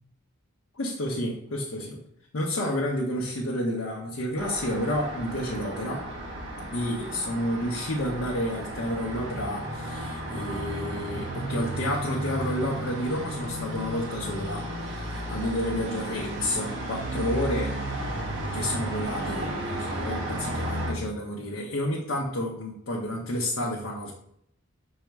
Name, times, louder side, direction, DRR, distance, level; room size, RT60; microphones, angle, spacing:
voice 1, 0.7-2.0 2.3-6.0 6.7-17.8 18.5-24.1, left 1 dB, 60° left, -3 dB, 0.7 m, -30 dB
Traffic noise roadway noise, 4.4-20.9, right 1 dB, 55° right, 1.1 m, -33 dB
5.5 x 2.0 x 4.6 m, 0.71 s
head